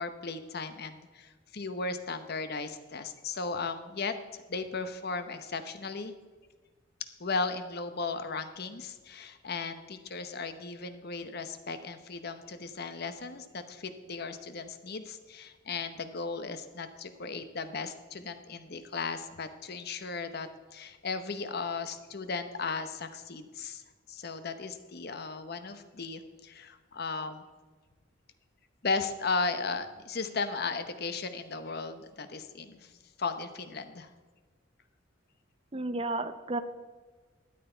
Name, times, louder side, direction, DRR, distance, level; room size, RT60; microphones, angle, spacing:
voice 1, 0.0-6.1 7.2-23.8 24.1-27.5 28.8-32.9 33.2-34.1, left 4 dB, 55° left, 10 dB, 0.9 m, -36 dB
voice 2, 35.7-36.6, right 2 dB, 30° right, 10 dB, 0.7 m, -32 dB
13.0 x 9.2 x 4.5 m, 1.3 s
head